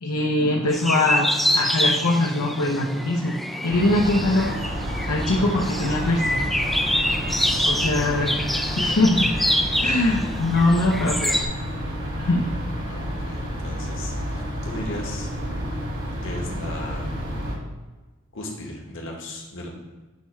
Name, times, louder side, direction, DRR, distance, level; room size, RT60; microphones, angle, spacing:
voice 1, 0.0-3.4 3.6-4.5 5.1-6.4 7.6-8.3 8.8-9.3 9.8-11.4 12.2-12.4, left 2 dB, 85° left, -1 dB, 0.8 m, -22 dB
sound 1, 0.7-11.4, equal, ahead, 0.3 m, -26 dB
sound 2, 3.7-17.5, equal, 70° right, 2.3 m, -30 dB
voice 2, 12.9-15.3 16.2-17.2 18.3-19.7, left 1 dB, 60° left, 0 dB, 1.4 m, -36 dB
9.7 x 3.2 x 4.6 m, 1.2 s
head